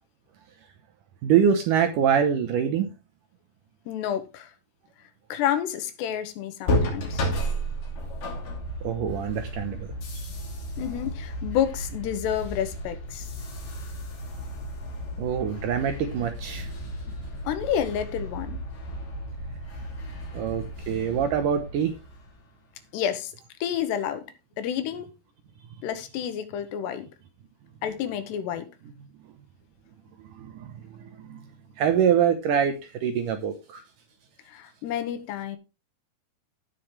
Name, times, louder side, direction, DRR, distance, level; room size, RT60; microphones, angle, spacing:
voice 1, 1.2-2.9 8.8-9.9 15.2-16.7 20.3-21.9 30.4-31.4 31.8-33.8, right 8 dB, 70° right, 2.1 m, -25 dB
voice 2, 3.9-4.5 5.3-7.3 10.8-13.3 17.5-18.6 22.9-23.3 23.6-24.3 24.6-25.1 25.8-27.1 27.8-28.7 34.5-35.6, left 10 dB, 85° left, 3.3 m, -29 dB
sound 1, 6.7-22.4, equal, 55° left, 4.2 m, -33 dB
16.5 x 6.0 x 3.3 m
omnidirectional pair, 4.7 m